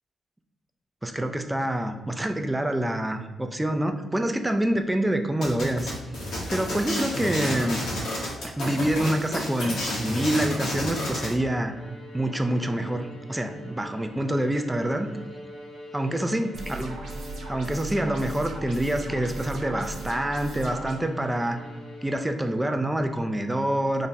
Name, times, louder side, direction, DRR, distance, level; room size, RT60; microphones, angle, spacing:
voice 1, 1.0-5.9 6.5-7.8 8.4-11.7 12.1-15.1 15.9-17.0 17.5-21.6 22.0-24.1, right 1 dB, 10° right, 6 dB, 0.3 m, -26 dB
sound 1, 5.4-11.3, left 1 dB, 80° left, 1.4 m, -31 dB
Bowed string instrument, 11.6-22.7, left 1 dB, 60° left, 1.3 m, -44 dB
sound 2, 16.5-20.9, right 2 dB, 80° right, 0.9 m, -37 dB
3.5 x 2.1 x 4.0 m, 1.3 s
cardioid pair, 85°, 0 cm